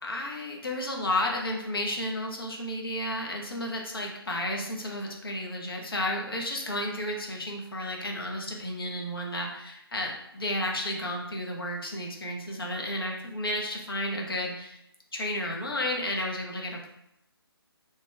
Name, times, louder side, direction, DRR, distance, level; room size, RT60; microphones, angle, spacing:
voice 1, 0.0-14.8 15.1-16.9, left 1 dB, 65° left, 0 dB, 0.9 m, -32 dB
4.8 x 3.0 x 2.3 m, 0.82 s
figure-of-eight pair, 145°, 13 cm